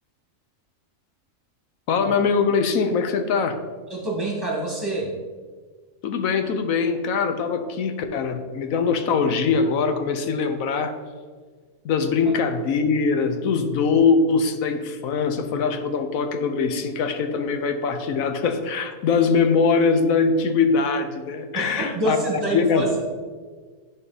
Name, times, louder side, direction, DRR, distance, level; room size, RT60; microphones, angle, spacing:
voice 1, 1.9-3.6 6.0-10.9 11.8-23.1, left 5 dB, 90° left, 8 dB, 1.2 m, -22 dB
voice 2, 3.9-5.1 12.3-12.4 21.5-22.9, right 1 dB, 20° right, -2 dB, 1.6 m, -26 dB
11.0 x 4.6 x 4.0 m, 1.5 s
omnidirectional pair, 1.4 m